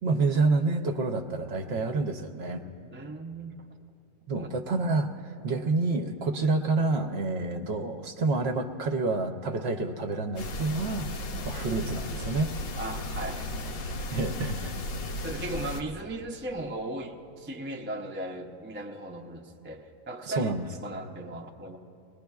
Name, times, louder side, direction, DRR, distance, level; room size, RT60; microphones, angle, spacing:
voice 1, 0.0-2.6 4.3-12.5 14.1-14.7 20.3-20.6, right 3 dB, 60° right, 5 dB, 0.8 m, -28 dB
voice 2, 2.9-3.7 4.3-4.5 11.3-11.4 12.8-13.5 15.2-20.5 20.8-21.8, right 1 dB, 20° right, 2 dB, 0.3 m, -37 dB
sound 1, 10.4-15.8, left 1 dB, 75° left, 1.1 m, -35 dB
22.0 x 20.0 x 2.3 m, 2.8 s
omnidirectional pair, 1.4 m